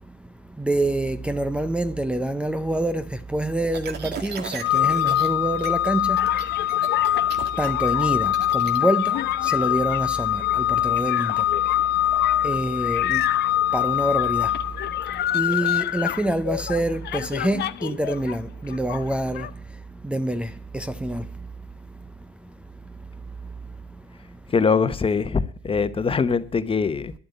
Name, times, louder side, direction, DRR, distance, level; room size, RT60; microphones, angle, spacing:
voice 1, 0.6-6.3 7.6-11.4 12.4-13.3 13.7-14.5 15.3-19.5 20.0-21.3, right 1 dB, 5° right, 0.6 m, -26 dB
sound 1, 3.7-5.3 5.6-5.9 6.2-8.8, right 6 dB, 50° right, 1.9 m, -36 dB
Organ, 4.6-15.4, left 12 dB, 85° left, 0.8 m, -23 dB
sound 2, 6.2-18.4 18.6-19.5, left 12 dB, 55° left, 0.8 m, -31 dB
voice 2, 24.5-27.1, left 5 dB, 25° left, 1.1 m, -22 dB
11.0 x 7.9 x 8.3 m
supercardioid pair, 80°, 21 cm